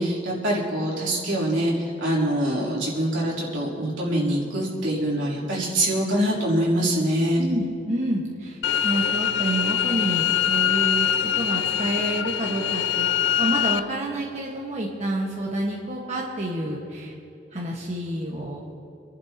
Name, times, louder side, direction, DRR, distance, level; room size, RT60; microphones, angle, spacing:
voice 1, 0.0-7.4, right 1 dB, 85° right, -5 dB, 3.5 m, -24 dB
voice 2, 7.4-8.6 8.8-11.1 11.4-17.1 17.5-18.6, right 1 dB, 35° right, -4 dB, 1.5 m, -28 dB
sound 1, 8.6-13.8, left 10 dB, 75° left, 0.4 m, -23 dB
27.0 x 11.5 x 3.0 m, 2.6 s
head